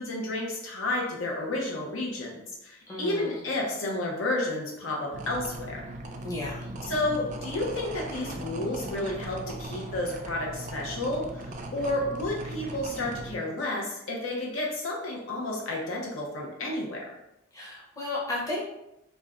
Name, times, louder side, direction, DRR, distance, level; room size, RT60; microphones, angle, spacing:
voice 1, 0.0-2.3 2.6-5.8 6.9-17.2, left 2 dB, 80° left, -2 dB, 0.7 m, -31 dB
voice 2, 2.9-3.4 6.2-6.7 17.5-18.6, left 2 dB, 15° left, -5 dB, 0.7 m, -34 dB
sound 1, 5.1-13.4, right 2 dB, 40° right, 0.3 m, -39 dB
2.5 x 2.2 x 3.5 m, 0.85 s
head